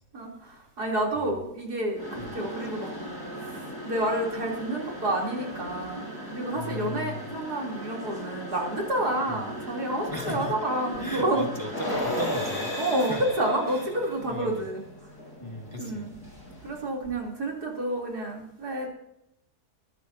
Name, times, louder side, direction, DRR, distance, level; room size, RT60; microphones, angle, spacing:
voice 1, 0.1-2.9 3.3-3.5 3.8-11.4 12.8-14.8 15.8-16.1 16.6-18.9, right 1 dB, 75° right, -1 dB, 4.1 m, -29 dB
sound 1, 1.9-16.9, equal, 80° left, 7.8 m, -37 dB
voice 2, 6.5-7.3 9.3-9.4 10.1-10.7 11.0-13.2 13.7-13.8 14.3-14.6 15.4-16.1, left 1 dB, 20° left, 1 dB, 1.8 m, -37 dB
21.5 x 12.5 x 2.8 m, 0.78 s
omnidirectional pair, 1.7 m